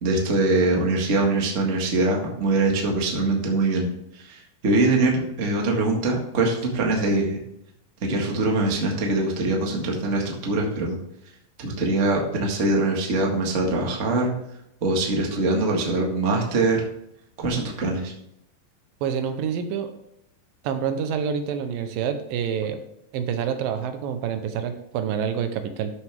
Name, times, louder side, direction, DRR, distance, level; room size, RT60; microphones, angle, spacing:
voice 1, 0.0-3.9 4.3-7.4 8.0-11.0 11.6-14.3 14.8-16.8 17.4-18.1, right 2 dB, 35° right, 0 dB, 1.3 m, -23 dB
voice 2, 19.0-19.9 20.6-22.8 23.1-25.9, right 7 dB, 85° right, 8 dB, 2.6 m, -27 dB
13.0 x 6.3 x 3.5 m, 0.78 s
omnidirectional pair, 4.0 m